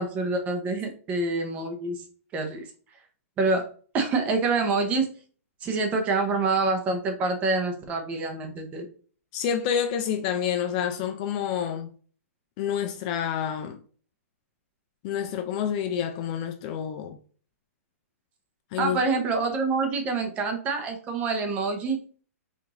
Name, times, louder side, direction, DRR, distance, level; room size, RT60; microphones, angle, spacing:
voice 1, 0.0-2.0 2.3-2.7 3.4-3.6 3.9-5.1 5.6-8.9 18.8-22.0, right 3 dB, 15° right, 0.7 m, -26 dB
voice 2, 9.3-11.9 12.6-13.8 15.0-17.2 18.7-19.0, left 8 dB, 30° left, 0.3 m, -28 dB
4.8 x 2.5 x 3.7 m
hypercardioid pair, 165°, 8 cm